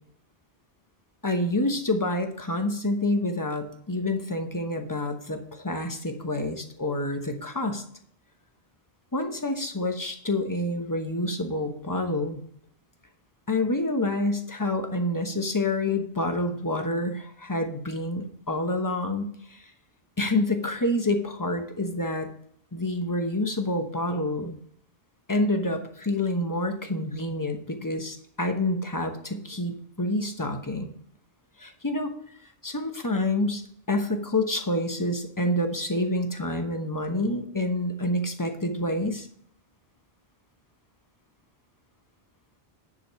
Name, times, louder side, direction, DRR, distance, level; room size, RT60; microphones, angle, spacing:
voice 1, 1.2-7.8 9.1-12.4 13.5-19.7 20.2-22.3 22.7-24.6 25.3-30.9 31.6-32.1 32.6-33.6 33.9-39.3, left 1 dB, 20° left, 5 dB, 1.0 m, -28 dB
9.9 x 4.7 x 5.4 m, 0.66 s
omnidirectional pair, 1.0 m